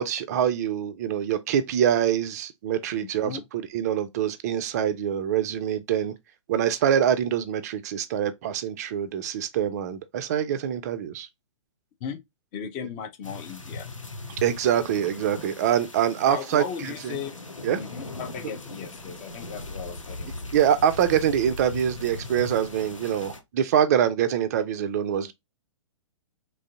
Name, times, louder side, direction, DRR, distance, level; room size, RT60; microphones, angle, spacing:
voice 1, 0.0-6.1 6.5-11.3 14.4-17.2 17.6-17.8 20.5-25.3, right 9 dB, 35° right, 0.3 m, -25 dB
voice 2, 12.5-13.9 16.3-17.4 17.7-20.3, left 7 dB, 25° left, 0.5 m, -36 dB
sound 1, 13.2-23.4, left 2 dB, 85° left, 0.6 m, -39 dB
3.2 x 2.5 x 2.3 m
figure-of-eight pair, 115°, 16 cm